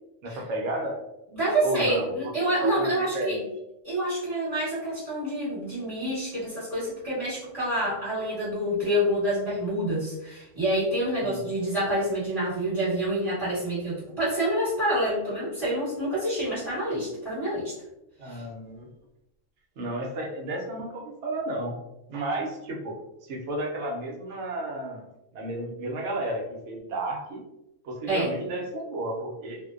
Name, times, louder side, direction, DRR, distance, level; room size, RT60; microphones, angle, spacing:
voice 1, 0.2-1.0 1.6-3.5 11.2-11.4 18.2-18.9 19.8-21.8 22.1-22.9 23.3-25.0 25.3-27.4 27.8-29.6, right 1 dB, 65° right, 0 dB, 0.9 m, -32 dB
voice 2, 1.4-3.4 3.8-17.7 18.2-18.4 28.1-28.3, right 1 dB, 25° right, -12 dB, 1.1 m, -27 dB
2.5 x 2.1 x 2.4 m, 0.91 s
omnidirectional pair, 1.3 m